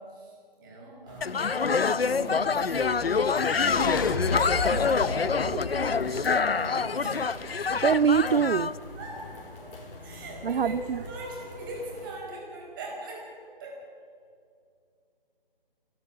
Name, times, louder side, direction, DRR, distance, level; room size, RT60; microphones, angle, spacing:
voice 1, 0.0-1.5 2.1-2.9 3.2-7.3 9.0-13.9, right 1 dB, 20° right, -1 dB, 4.7 m, -42 dB
sound 1, 1.1-12.1, left 2 dB, 65° left, 4.6 m, -42 dB
sound 2, 1.2-8.7, left 5 dB, 85° left, 0.8 m, -26 dB
sound 3, 2.7-7.0, left 3 dB, 20° left, 1.1 m, -35 dB
voice 2, 7.5-8.8 10.4-11.0, right 7 dB, 75° right, 17 dB, 0.5 m, -25 dB
29.0 x 12.5 x 7.2 m, 2.4 s
figure-of-eight pair, 160°, 29 cm